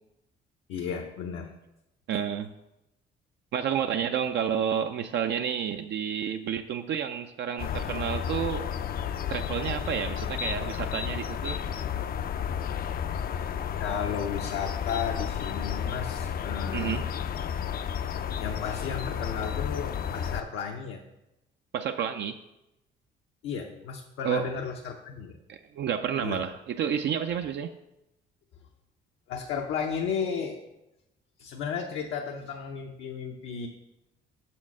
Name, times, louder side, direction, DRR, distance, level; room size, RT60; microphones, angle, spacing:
voice 1, 0.7-1.5 13.8-17.0 18.4-21.0 23.4-25.4 26.2-26.4 29.3-30.6 31.4-33.7, left 6 dB, 80° left, 0 dB, 0.7 m, -34 dB
voice 2, 2.1-2.5 3.5-8.7 9.3-11.6 16.7-17.1 21.7-22.4 24.2-24.5 25.5-27.7, right 8 dB, 60° right, 6 dB, 0.4 m, -30 dB
sound 1, 7.6-20.4, left 8 dB, 50° left, 0.4 m, -32 dB
6.4 x 4.4 x 5.9 m, 0.92 s
cardioid pair, 85°, 20 cm